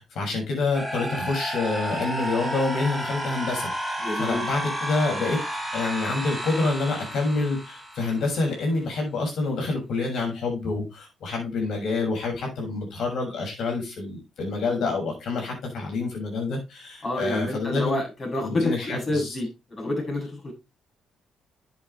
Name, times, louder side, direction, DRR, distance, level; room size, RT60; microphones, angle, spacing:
voice 1, 0.0-5.4 5.7-18.0 18.4-19.3, left 3 dB, 70° left, 1 dB, 6.4 m, -27 dB
sound 1, 0.7-8.7, right 1 dB, 5° right, 4.5 m, -32 dB
voice 2, 4.0-4.4 17.0-20.5, left 1 dB, 40° left, 0 dB, 7.6 m, -28 dB
10.5 x 8.0 x 3.3 m, 0.25 s
cardioid pair, 90°, 0 cm